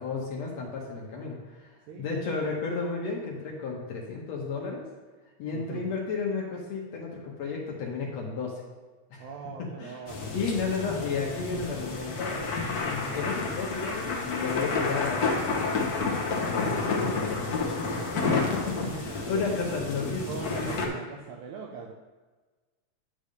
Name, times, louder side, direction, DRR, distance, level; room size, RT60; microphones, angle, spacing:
voice 1, 0.0-1.7 2.0-4.8 5.4-8.6 9.1-9.2 9.6-10.0 10.3-12.4 12.8-15.8 16.3-17.6 18.3-18.7 19.0-20.9, left 4 dB, 70° left, -1 dB, 2.0 m, -33 dB
voice 2, 1.9-2.3 5.5-6.0 9.2-10.7 18.3-19.6 20.3-21.9, right 6 dB, 80° right, 0 dB, 2.0 m, -41 dB
sound 1, 10.1-20.9, left 4 dB, 90° left, 0.8 m, -30 dB
10.0 x 3.4 x 6.5 m, 1.3 s
omnidirectional pair, 3.5 m